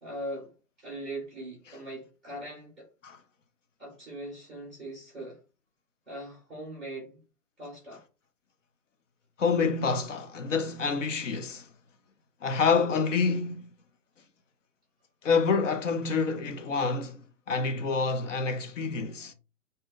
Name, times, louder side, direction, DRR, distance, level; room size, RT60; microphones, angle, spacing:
voice 1, 0.0-2.9 3.8-5.4 6.1-7.2 7.6-8.0, right 1 dB, ahead, 0.6 m, -40 dB
voice 2, 9.4-11.7 12.4-13.7 15.2-17.2 17.5-19.3, left 5 dB, 55° left, 0.6 m, -27 dB
2.7 x 2.1 x 3.7 m
hypercardioid pair, 140°, 47 cm